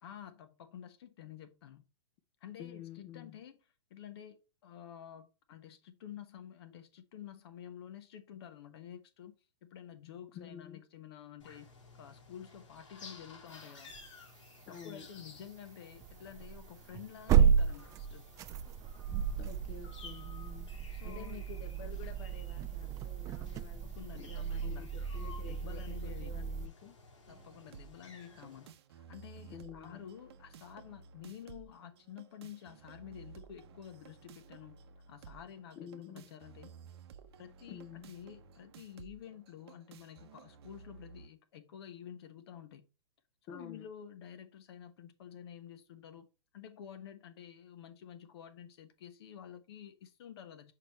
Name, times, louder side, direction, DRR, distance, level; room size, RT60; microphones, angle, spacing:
voice 1, 0.0-1.8 2.4-3.6 3.9-13.9 14.7-18.3 20.9-21.4 23.8-25.0 25.5-26.4 27.3-34.8 35.1-36.7 37.4-42.9 43.5-46.3 46.5-50.7, left 9 dB, 55° left, 1.1 m, -50 dB
voice 2, 2.6-3.4 10.3-10.8 14.7-15.1 19.4-20.7 21.0-23.9 24.2-27.0 29.5-30.1 35.8-36.3 37.7-38.1 43.5-43.9, left 8 dB, 30° left, 0.8 m, -49 dB
sound 1, 11.4-28.7, left 4 dB, 85° left, 2.4 m, -56 dB
sound 2, 13.9-14.0 14.7-14.8 16.0-26.7, right 7 dB, 20° right, 0.4 m, -33 dB
sound 3, 27.3-41.3, right 6 dB, 55° right, 0.8 m, -55 dB
6.6 x 4.9 x 3.1 m
hypercardioid pair, 125°, 16 cm